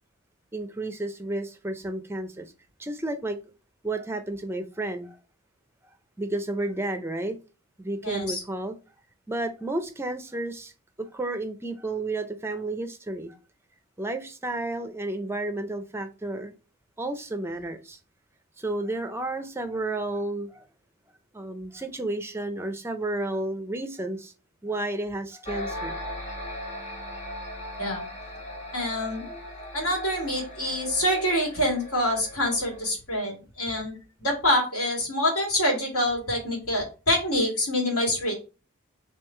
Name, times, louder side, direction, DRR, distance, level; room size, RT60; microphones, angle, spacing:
voice 1, 0.5-2.5 2.8-3.4 3.8-5.2 6.2-7.4 7.8-8.8 9.3-10.7 11.0-13.4 14.0-16.5 17.0-18.0 18.6-20.6 21.3-24.3 24.6-26.0, right 2 dB, 10° right, 8 dB, 0.4 m, -31 dB
voice 2, 8.0-8.4 27.8-28.0 28.7-29.2 29.7-38.3, left 1 dB, 85° left, 0 dB, 2.0 m, -26 dB
sound 1, 25.4-32.9, left 1 dB, 30° left, 1.1 m, -38 dB
3.6 x 3.1 x 4.3 m, 0.33 s
head